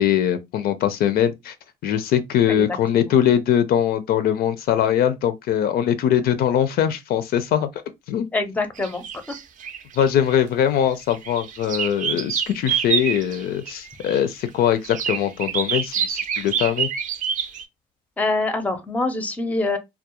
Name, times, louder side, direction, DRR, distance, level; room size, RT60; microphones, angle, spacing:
voice 1, 0.0-1.5 1.8-7.7 8.1-8.3 10.0-16.9, left 9 dB, 65° left, 0.4 m, -21 dB
voice 2, 8.3-9.0 18.2-19.8, left 2 dB, 10° left, 0.5 m, -24 dB
sound 1, 8.8-10.4 10.9-14.2 14.8-17.6, right 8 dB, 50° right, 0.4 m, -27 dB
2.3 x 2.0 x 2.8 m
cardioid pair, 110°, 17 cm